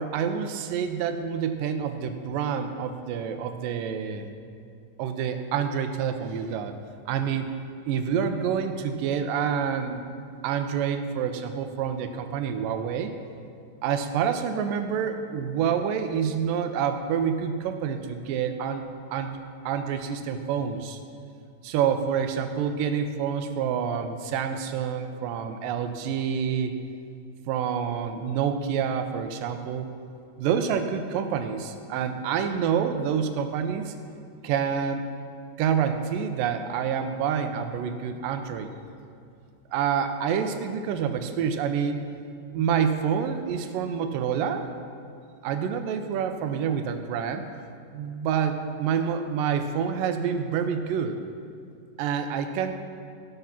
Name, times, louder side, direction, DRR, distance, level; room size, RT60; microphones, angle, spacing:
voice 1, 0.0-4.3 5.0-6.7 7.1-7.5 7.9-10.1 10.4-13.1 13.8-18.8 19.1-21.0 21.6-26.7 27.5-29.9 30.4-33.9 34.4-35.0 35.6-38.7 39.7-42.0 42.5-44.6 45.4-47.5 47.9-51.2 52.0-52.8, right 7 dB, 85° right, 7 dB, 2.4 m, -27 dB
16.0 x 6.6 x 5.8 m, 2.4 s
omnidirectional pair, 3.9 m